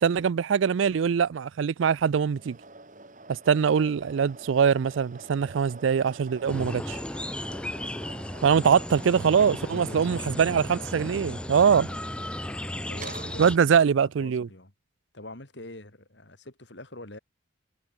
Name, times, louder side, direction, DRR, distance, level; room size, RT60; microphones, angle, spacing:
voice 1, 0.0-2.6 3.3-7.0 8.4-11.9 13.4-14.5, right 7 dB, 80° right, 0.4 m, -23 dB
sound 1, 2.3-14.0, right 3 dB, 40° right, 3.3 m, -47 dB
sound 2, 6.5-13.6, left 1 dB, 5° left, 0.4 m, -35 dB
voice 2, 9.5-10.4 11.8-12.1 12.6-13.5 14.0-14.7 15.1-17.2, left 1 dB, 65° left, 3.3 m, -45 dB
head